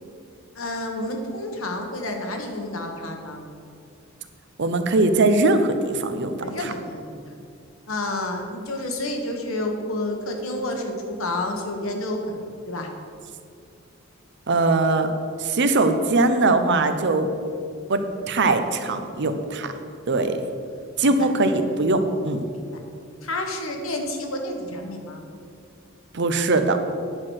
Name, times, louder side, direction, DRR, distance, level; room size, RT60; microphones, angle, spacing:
voice 1, 0.5-3.4 6.4-7.3 7.9-12.9 21.0-21.3 22.5-22.8 23.2-25.2, left 1 dB, 75° left, 3 dB, 1.4 m, -30 dB
voice 2, 4.6-6.7 14.5-15.1 15.4-17.3 17.9-19.7 20.1-20.4 21.0-22.4 26.1-26.8, right 2 dB, 60° right, 8 dB, 0.8 m, -21 dB
9.7 x 5.9 x 6.4 m, 2.4 s
head